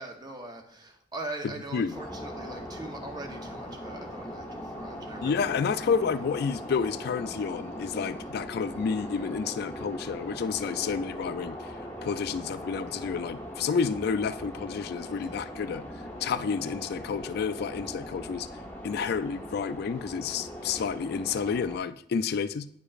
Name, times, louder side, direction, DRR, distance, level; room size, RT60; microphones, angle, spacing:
voice 1, 0.0-5.6, right 2 dB, 20° right, 3 dB, 0.8 m, -41 dB
sound 1, 1.9-21.8, equal, 10° left, 1.0 m, -40 dB
voice 2, 5.2-11.7 12.0-15.8 16.2-18.5 18.8-22.7, left 6 dB, 55° left, 14 dB, 0.3 m, -30 dB
9.7 x 4.9 x 2.5 m, 0.66 s
head